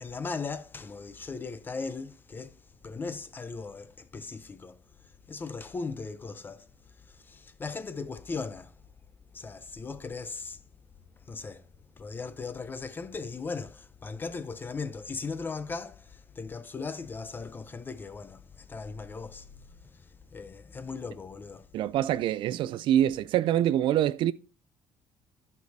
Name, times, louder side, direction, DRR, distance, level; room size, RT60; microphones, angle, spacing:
voice 1, 0.0-8.8 9.3-10.6 11.2-11.7 12.0-21.7, left 4 dB, 20° left, 0.5 m, -38 dB
voice 2, 21.7-24.3, right 11 dB, 65° right, 0.4 m, -25 dB
14.0 x 4.8 x 2.6 m
cardioid pair, 145°, 9 cm